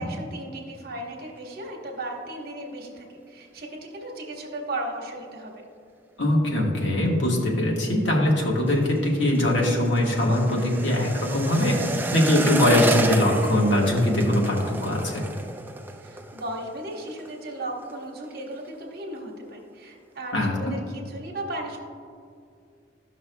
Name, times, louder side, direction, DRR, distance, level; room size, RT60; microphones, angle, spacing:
voice 1, 0.0-5.5 16.0-21.8, right 1 dB, 50° right, 0 dB, 1.1 m, -36 dB
voice 2, 6.2-11.8 12.1-15.2 20.3-20.7, left 1 dB, 70° left, -2 dB, 1.4 m, -22 dB
sound 1, 8.3-17.3 17.6-18.0 18.2-18.8 19.1-19.2, right 2 dB, 10° right, 0.3 m, -32 dB
13.0 x 5.8 x 2.2 m, 2.3 s
head